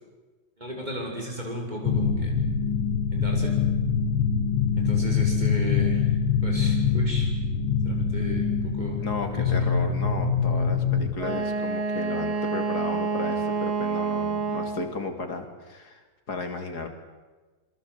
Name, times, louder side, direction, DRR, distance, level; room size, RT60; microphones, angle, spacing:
voice 1, 0.6-2.4 3.1-3.5 4.8-6.1 6.4-7.3 7.8-9.7, equal, 20° right, 1 dB, 6.4 m, -34 dB
sound 1, 1.8-11.2, left 6 dB, 80° left, 2.9 m, -24 dB
voice 2, 9.0-16.9, left 3 dB, 50° left, 6 dB, 3.3 m, -34 dB
Wind instrument woodwind instrument, 11.2-14.9, right 4 dB, 85° right, 3.8 m, -28 dB
26.5 x 23.0 x 8.0 m, 1.3 s
omnidirectional pair, 2.3 m